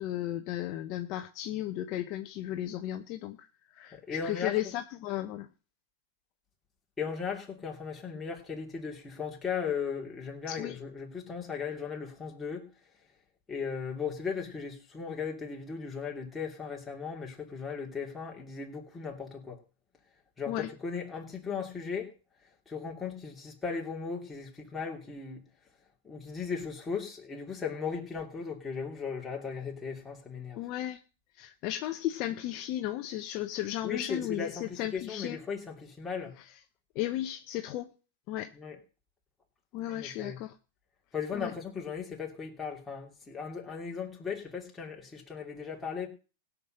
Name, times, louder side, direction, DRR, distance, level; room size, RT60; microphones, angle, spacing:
voice 1, 0.0-3.5 3.7-4.0 4.2-5.5 10.5-10.8 20.5-20.7 30.6-31.0 31.4-35.4 37.0-37.9 38.3-38.5 39.7-40.5 41.3-41.5, left 13 dB, 45° left, 7 dB, 0.8 m, -34 dB
voice 2, 3.9-4.7 7.0-12.7 13.5-19.6 20.4-22.1 22.7-25.4 26.0-30.6 33.6-36.4 38.5-38.8 40.0-40.4 41.1-46.1, left 6 dB, 10° left, 0 dB, 3.0 m, -37 dB
17.0 x 6.1 x 6.5 m, 0.36 s
hypercardioid pair, 130°, 0 cm